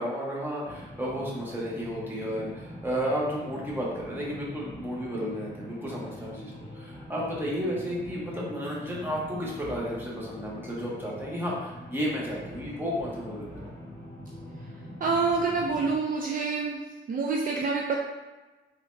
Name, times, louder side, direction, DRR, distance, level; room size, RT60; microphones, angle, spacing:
voice 1, 0.0-6.5 6.8-13.7, equal, 10° right, -5 dB, 1.0 m, -32 dB
sound 1, 0.6-15.9, left 1 dB, 15° left, 1.2 m, -43 dB
voice 2, 15.0-16.8 17.1-17.9, right 4 dB, 50° right, -1 dB, 0.4 m, -27 dB
4.0 x 3.1 x 2.6 m, 1.2 s
cardioid pair, 130°, 19 cm